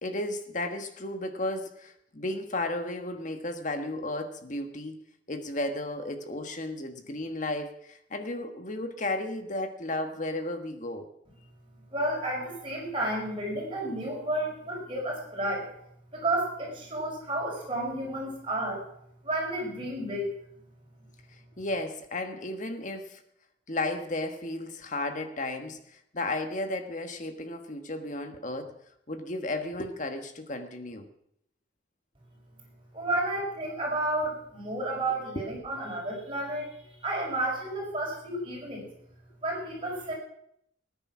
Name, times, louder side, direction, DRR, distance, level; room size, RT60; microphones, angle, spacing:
voice 1, 0.0-5.0 5.3-11.1 21.6-23.2 23.7-28.7 29.1-31.0 35.3-35.4, left 2 dB, 40° left, 7 dB, 1.4 m, -34 dB
voice 2, 11.9-15.7 16.1-18.8 19.2-20.3 32.9-38.9 39.4-40.1, right 1 dB, 25° right, -2 dB, 5.6 m, -31 dB
18.5 x 9.9 x 6.1 m, 0.74 s
head